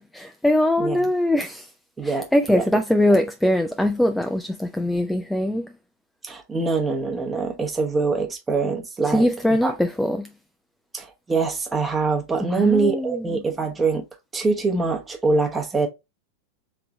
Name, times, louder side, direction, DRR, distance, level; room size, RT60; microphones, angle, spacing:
voice 1, 0.0-1.7 2.0-5.7 9.0-10.3 12.4-13.4, left 1 dB, 5° left, 0.3 m, -22 dB
voice 2, 2.0-2.6 6.2-9.3 9.6-9.7 10.9-14.0 14.3-15.9, right 4 dB, 15° right, 1.0 m, -24 dB
3.8 x 3.4 x 2.9 m
figure-of-eight pair, 90°, 0 cm